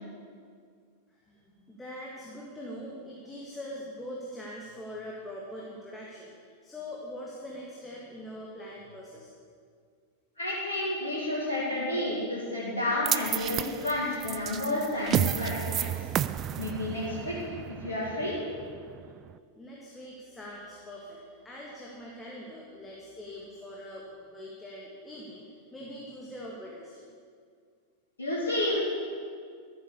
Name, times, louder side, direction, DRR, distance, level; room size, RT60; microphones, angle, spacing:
voice 1, 1.2-6.3 6.6-9.3 19.6-27.0, left 1 dB, 10° left, -4 dB, 1.9 m, -43 dB
voice 2, 10.4-15.8 16.6-18.4 28.2-28.8, left 1 dB, 75° left, -8 dB, 2.5 m, -30 dB
sound 1, 13.1-19.3, right 11 dB, 30° right, 0.4 m, -32 dB
13.0 x 8.8 x 6.9 m, 2.1 s
figure-of-eight pair, 90°, 0 cm